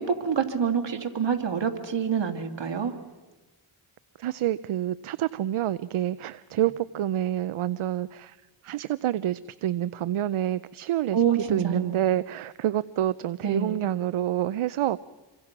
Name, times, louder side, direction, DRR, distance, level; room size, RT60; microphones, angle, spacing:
voice 1, 0.0-3.0 11.1-12.0 13.4-13.8, right 7 dB, 60° right, 5 dB, 2.7 m, -26 dB
voice 2, 4.2-8.4 8.6-11.2 11.5-15.0, right 12 dB, 80° right, 16 dB, 0.7 m, -27 dB
27.5 x 23.5 x 6.0 m, 1.2 s
cardioid pair, 65°, 49 cm